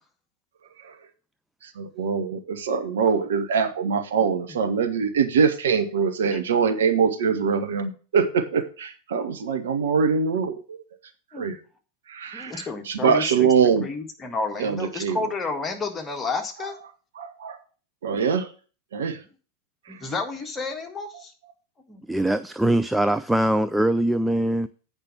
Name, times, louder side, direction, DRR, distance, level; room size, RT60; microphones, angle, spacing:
voice 1, 1.8-10.8 11.4-11.6 12.1-13.8 14.6-15.2 17.2-17.6 18.0-18.5 18.9-19.2, right 6 dB, 60° right, 1.2 m, -23 dB
voice 2, 4.2-4.5 6.3-6.4 11.3-11.5 12.3-16.7 18.1-18.2 19.9-21.3 21.9-22.0, left 3 dB, 15° left, 1.7 m, -31 dB
voice 3, 22.1-24.7, right 1 dB, 5° right, 0.4 m, -22 dB
8.7 x 5.2 x 6.1 m
figure-of-eight pair, 90°, 0 cm